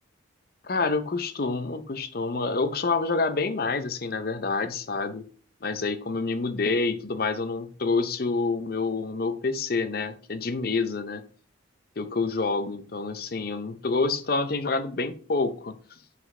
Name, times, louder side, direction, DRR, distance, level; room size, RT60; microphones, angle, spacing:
voice 1, 0.6-5.2 5.6-11.2 12.0-15.7, left 3 dB, 50° left, 10 dB, 0.6 m, -27 dB
5.9 x 4.9 x 3.2 m, 0.41 s
head